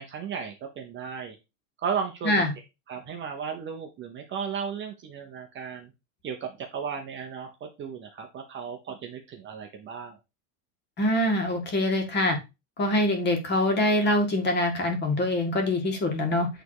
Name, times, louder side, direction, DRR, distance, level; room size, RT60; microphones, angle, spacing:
voice 1, 0.0-1.4 1.8-2.4 2.9-5.9 6.2-10.2, right 6 dB, 25° right, 3 dB, 0.9 m, -35 dB
voice 2, 11.0-12.4 12.8-16.5, left 1 dB, 20° left, 4 dB, 2.0 m, -24 dB
9.0 x 3.5 x 4.8 m, 0.26 s
supercardioid pair, 155°, 46 cm